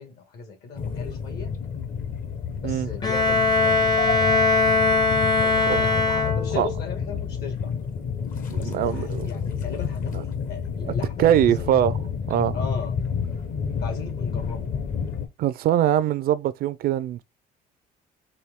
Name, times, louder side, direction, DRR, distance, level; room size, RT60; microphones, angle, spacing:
voice 1, 0.0-1.5 2.6-4.1 5.4-7.7 8.6-11.8 12.5-13.0 13.8-14.7, left 5 dB, 70° left, 1.6 m, -37 dB
sound 1, 0.8-15.3, left 6 dB, 55° left, 1.0 m, -30 dB
Bowed string instrument, 3.0-6.8, left 3 dB, 25° left, 0.6 m, -21 dB
voice 2, 8.5-9.3 10.1-10.2 10.9-11.0 11.2-12.0 12.3-12.6 15.4-17.2, right 11 dB, 65° right, 0.4 m, -22 dB
4.4 x 2.7 x 3.5 m
cardioid pair, 110°, 17 cm